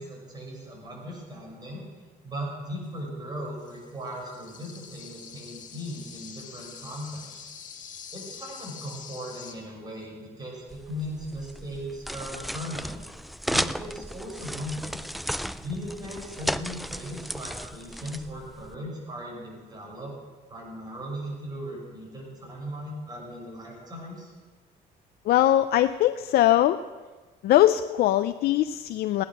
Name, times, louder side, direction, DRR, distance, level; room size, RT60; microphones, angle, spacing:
voice 1, 0.0-1.8 2.2-7.5 8.1-13.0 13.5-15.0 15.5-20.1 20.5-24.3, equal, 25° right, -2 dB, 6.4 m, -38 dB
sound 1, 3.6-9.5, left 7 dB, 50° left, 1.8 m, -45 dB
sound 2, 10.7-18.8, equal, ahead, 0.3 m, -34 dB
voice 2, 25.2-26.8 27.4-29.2, left 13 dB, 70° left, 10 dB, 0.5 m, -21 dB
17.0 x 10.5 x 6.3 m, 1.3 s
cardioid pair, 110°, 17 cm